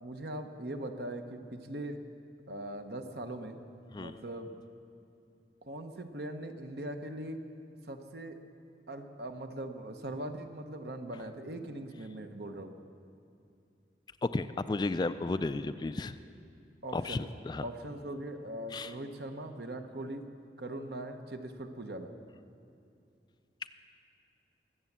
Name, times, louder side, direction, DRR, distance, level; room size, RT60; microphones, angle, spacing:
voice 1, 0.0-2.0 2.5-3.6 3.9-4.6 5.6-7.4 7.8-8.4 8.9-12.7 16.8-17.3 17.6-20.2 20.6-22.1, right 1 dB, 65° right, 6 dB, 1.0 m, -40 dB
voice 2, 14.2-16.2 16.9-17.6 18.7-18.9, left 3 dB, 25° left, 11 dB, 0.3 m, -33 dB
22.5 x 8.0 x 7.3 m, 2.5 s
head